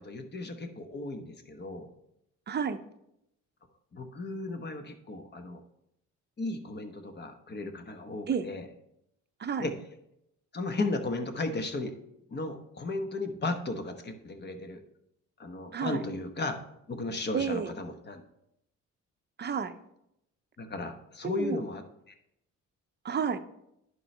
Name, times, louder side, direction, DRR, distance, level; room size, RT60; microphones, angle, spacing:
voice 1, 0.0-1.9 3.9-5.6 6.4-8.6 9.6-9.7 10.5-12.0 12.3-14.8 15.4-16.6 16.9-18.2 20.6-21.8, left 2 dB, 35° left, 6 dB, 1.1 m, -35 dB
voice 2, 2.5-2.8 8.3-8.5 9.4-9.7 15.7-16.0 17.3-17.7 19.4-19.7 21.2-21.6 23.0-23.4, right 6 dB, 35° right, 10 dB, 0.6 m, -30 dB
11.0 x 4.7 x 3.3 m, 0.80 s
cardioid pair, 90°, 30 cm